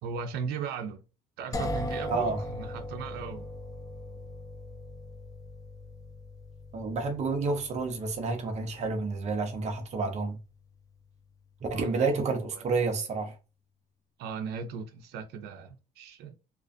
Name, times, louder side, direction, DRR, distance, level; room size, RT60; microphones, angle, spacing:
voice 1, 0.0-1.0 1.4-3.5 11.7-12.6 14.2-16.4, right 6 dB, 75° right, 0.5 m, -38 dB
sound 1, 1.5-11.3, left 1 dB, 20° left, 0.4 m, -40 dB
voice 2, 2.1-2.4 6.7-10.4 11.6-13.3, right 4 dB, 40° right, 0.7 m, -29 dB
2.4 x 2.3 x 2.3 m
cardioid pair, 110°, 17 cm